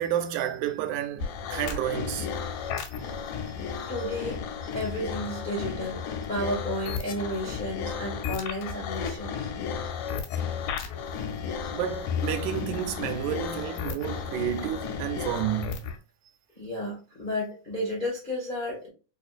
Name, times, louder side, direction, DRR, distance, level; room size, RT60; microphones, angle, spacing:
voice 1, 0.0-2.3 3.0-3.1 11.7-15.8, right 11 dB, 85° right, 2.0 m, -30 dB
sound 1, 1.2-16.0, left 6 dB, 90° left, 2.2 m, -33 dB
voice 2, 3.9-4.4 4.7-6.0 6.3-9.5 16.5-18.9, left 1 dB, 60° left, 0.5 m, -32 dB
4.9 x 2.4 x 2.4 m
omnidirectional pair, 3.5 m